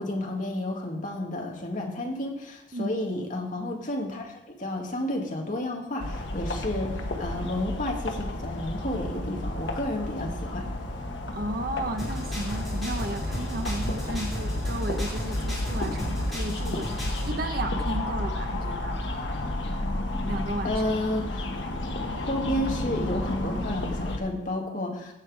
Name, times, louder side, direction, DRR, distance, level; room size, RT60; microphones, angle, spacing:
voice 1, 0.0-10.7 20.6-21.5 22.3-25.1, left 1 dB, 45° left, 1 dB, 1.8 m, -31 dB
sound 1, 6.0-24.2, left 1 dB, 70° left, 1.2 m, -31 dB
voice 2, 11.3-19.0 20.2-20.8, right 1 dB, 50° right, 6 dB, 1.0 m, -34 dB
sound 2, 12.0-17.3, left 1 dB, ahead, 4.4 m, -35 dB
15.5 x 6.0 x 4.8 m, 0.88 s
head